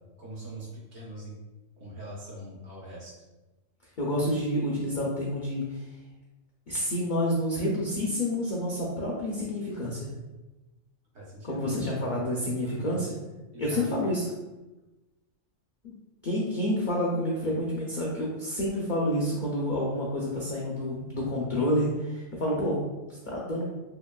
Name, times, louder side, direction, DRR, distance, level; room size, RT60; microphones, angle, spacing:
voice 1, 0.2-1.4 1.8-3.1 11.1-12.3 12.6-13.0 13.5-13.9, right 1 dB, 65° right, -6 dB, 1.2 m, -43 dB
voice 2, 4.0-5.9 6.7-10.1 11.4-13.2 13.6-14.3 15.8-15.9 16.2-22.8 23.3-23.7, left 1 dB, 65° left, -4 dB, 0.4 m, -29 dB
2.9 x 2.9 x 2.2 m, 1.1 s
omnidirectional pair, 1.4 m